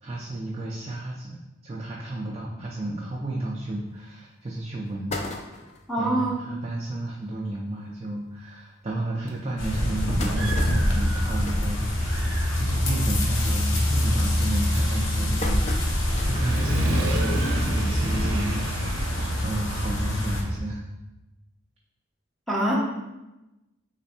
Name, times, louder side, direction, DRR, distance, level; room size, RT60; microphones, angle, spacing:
voice 1, 0.0-5.1 6.0-20.8, right 2 dB, 30° right, -3 dB, 0.4 m, -33 dB
sound 1, 4.0-4.1 4.5-4.6 4.9-5.9 6.5-6.6 6.9-7.0 7.3-7.5 8.2-8.3 8.8-8.9 9.6-12.5 12.8-13.2 13.5-13.9 14.5-16.6 17.0-17.1 18.3-18.4, left 2 dB, 30° left, 0.4 m, -37 dB
voice 2, 5.9-6.3 22.5-22.7, right 1 dB, ahead, -7 dB, 0.9 m, -24 dB
Human voice / Motorcycle, 9.3-9.4 9.9-11.6 12.0-20.6, right 1 dB, 70° right, 0.6 m, -35 dB
sound 2, 9.6-20.4, left 1 dB, 65° left, 0.8 m, -25 dB
3.3 x 3.2 x 4.3 m, 1.0 s
head